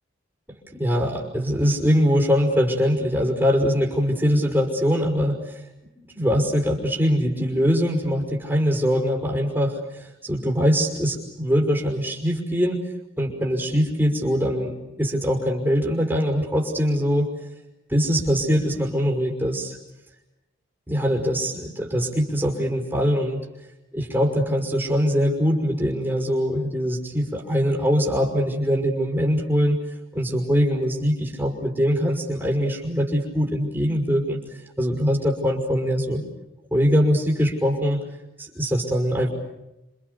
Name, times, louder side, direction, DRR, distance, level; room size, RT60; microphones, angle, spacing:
voice 1, 0.7-5.6 6.0-12.8 13.2-17.3 17.9-19.8 20.9-23.4 23.9-29.8 30.1-36.2 36.7-38.0 38.4-39.3, equal, 10° right, 2 dB, 5.7 m, -22 dB
29.5 x 27.0 x 7.0 m, 0.92 s
head